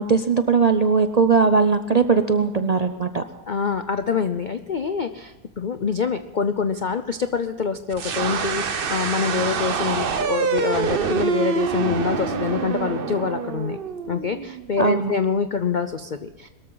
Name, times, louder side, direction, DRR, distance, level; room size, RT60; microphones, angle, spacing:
voice 1, 0.0-3.2 14.8-15.1, right 5 dB, 70° right, 8 dB, 0.3 m, -19 dB
voice 2, 3.5-13.8 14.1-16.5, left 5 dB, 75° left, 10 dB, 0.4 m, -25 dB
sound 1, 7.9-14.7, right 6 dB, 45° right, 0.8 m, -26 dB
22.5 x 13.5 x 4.0 m, 1.2 s
omnidirectional pair, 1.7 m